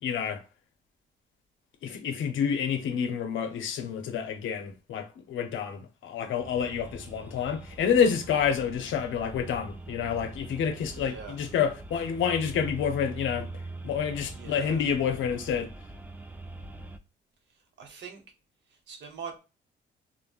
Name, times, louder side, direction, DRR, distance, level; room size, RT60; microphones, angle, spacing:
voice 1, 0.0-0.4 1.8-13.5 13.8-15.7, left 7 dB, 80° left, 0.6 m, -28 dB
sound 1, 6.4-17.0, right 2 dB, 10° right, 0.3 m, -43 dB
voice 2, 10.9-11.4 14.3-14.8 17.8-18.2 18.7-19.4, right 6 dB, 65° right, 0.8 m, -42 dB
3.3 x 2.0 x 2.4 m
cardioid pair, 90°, 20 cm